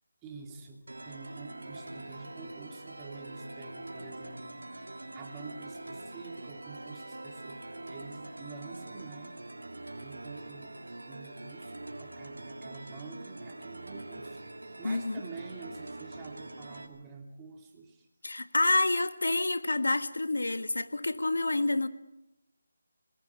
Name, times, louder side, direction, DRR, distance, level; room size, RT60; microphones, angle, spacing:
voice 1, 0.2-9.4 9.7-10.8 11.1-14.4 14.8-18.1, right 4 dB, 15° right, 1 dB, 2.8 m, -48 dB
sound 1, 0.9-16.9, right 2 dB, 90° right, 3.1 m, -44 dB
voice 2, 14.8-15.2 18.2-21.9, left 2 dB, 80° left, 10 dB, 1.5 m, -28 dB
27.5 x 20.0 x 4.7 m, 0.90 s
figure-of-eight pair, 165°, 0 cm